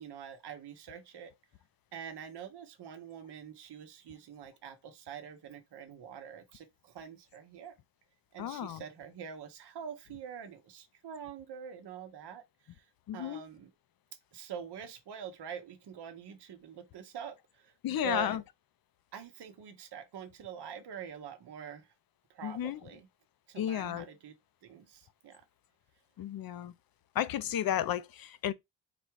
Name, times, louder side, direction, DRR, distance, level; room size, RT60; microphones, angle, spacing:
voice 1, 0.0-1.3 1.9-7.7 8.3-12.8 13.1-13.7 14.3-18.4 19.1-21.9 22.3-23.1 23.5-24.3 24.6-25.4, right 8 dB, 65° right, 1.0 m, -45 dB
voice 2, 8.4-8.8 13.1-13.4 17.8-18.4 22.4-22.8 23.6-24.1 26.2-26.7 27.1-28.5, left 11 dB, 55° left, 0.5 m, -33 dB
4.2 x 2.3 x 4.5 m
cardioid pair, 105°, 44 cm